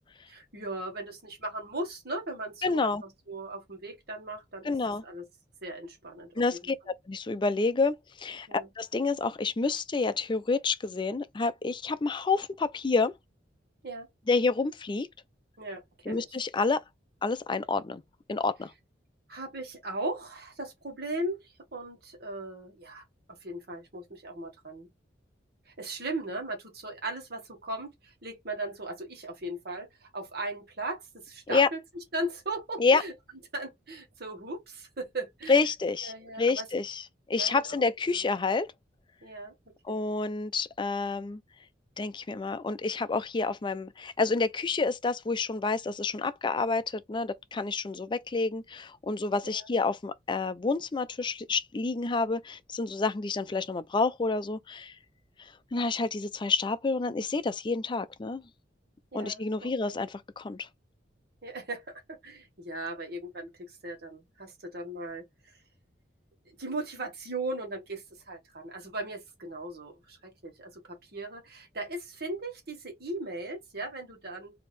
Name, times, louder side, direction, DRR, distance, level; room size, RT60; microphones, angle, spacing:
voice 1, 0.3-4.7 5.0-5.3 5.6-6.3 8.5-8.7 13.8-14.1 15.6-16.3 19.3-23.0 23.4-24.9 25.7-31.8 32.1-33.1 33.5-35.6 36.0-36.6 37.4-37.9 39.2-39.5 39.9-40.0 49.4-49.7 59.1-59.9 61.4-65.6 66.6-74.5, right 2 dB, 60° right, 1.5 m, -38 dB
voice 2, 2.6-3.0 4.6-5.0 6.4-8.5 8.8-13.1 14.3-15.1 16.1-16.8 17.2-18.0 18.3-18.7 31.5-31.7 32.8-33.0 35.5-38.7 39.8-41.4 42.0-54.9 55.4-58.4 59.1-60.7, left 4 dB, 25° left, 0.4 m, -29 dB
3.4 x 2.8 x 4.2 m
head